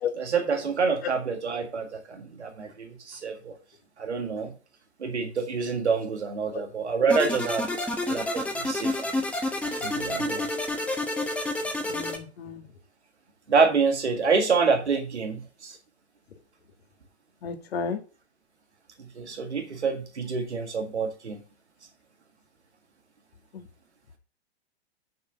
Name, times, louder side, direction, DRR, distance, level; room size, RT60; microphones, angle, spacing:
voice 1, 0.2-3.5 4.0-4.5 5.0-7.7 8.1-9.1 9.8-10.5 13.5-15.8 19.0-21.4, right 5 dB, 80° right, 4 dB, 1.8 m, -27 dB
sound 1, 7.1-12.2, left 1 dB, 5° left, 1.5 m, -29 dB
voice 2, 11.9-12.6 17.4-18.0, left 6 dB, 65° left, 7 dB, 1.8 m, -32 dB
7.0 x 6.5 x 5.7 m, 0.35 s
figure-of-eight pair, 115°, 33 cm